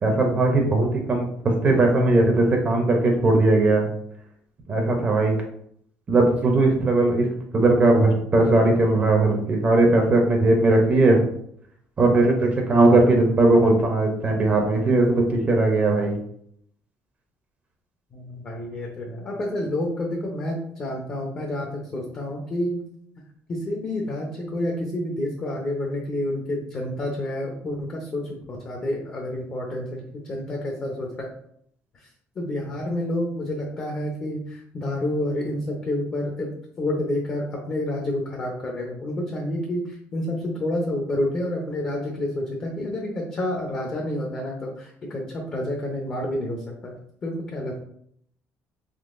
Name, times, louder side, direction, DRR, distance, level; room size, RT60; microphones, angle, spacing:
voice 1, 0.0-3.9 4.7-5.4 6.1-7.3 7.5-11.2 12.0-16.2, right 2 dB, 25° right, 2 dB, 0.6 m, -19 dB
voice 2, 18.1-22.8 23.5-31.3 31.9-32.1 32.4-47.8, left 1 dB, 30° left, -1 dB, 0.6 m, -29 dB
3.7 x 3.0 x 2.5 m, 0.67 s
cardioid pair, 155°, 5 cm